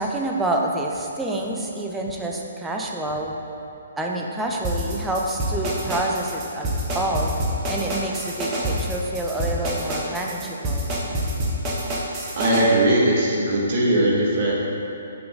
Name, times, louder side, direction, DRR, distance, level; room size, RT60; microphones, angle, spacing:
voice 1, 0.0-3.4 4.0-6.7 6.9-7.3 7.7-10.9, right 1 dB, 10° right, -1 dB, 0.6 m, -27 dB
sound 1, 4.6-12.6, right 1 dB, 25° right, 1.0 m, -27 dB
voice 2, 12.4-14.5, right 1 dB, 45° right, -4 dB, 1.4 m, -19 dB
5.5 x 3.9 x 5.1 m, 2.8 s
figure-of-eight pair, 135°, 0 cm